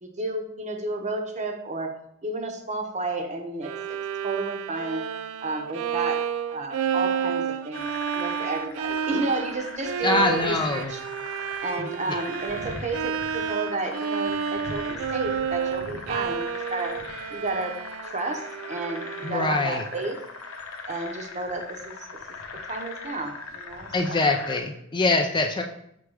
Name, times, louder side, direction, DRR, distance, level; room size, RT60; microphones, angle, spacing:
voice 1, 0.0-2.0 2.2-4.0 4.2-5.1 5.4-6.2 6.5-7.9 8.2-11.0 11.6-17.0 17.3-17.8 18.0-20.2 20.9-22.0 22.3-24.3, right 2 dB, 35° right, 4 dB, 0.8 m, -31 dB
Bowed string instrument, 3.6-19.7, right 8 dB, 70° right, 0.3 m, -31 dB
sound 1, 7.7-24.6, left 4 dB, 70° left, 0.8 m, -40 dB
voice 2, 10.0-10.9 11.8-12.2 19.2-19.8 23.9-25.6, left 2 dB, 20° left, 4 dB, 0.4 m, -24 dB
6.1 x 3.4 x 4.8 m, 0.74 s
head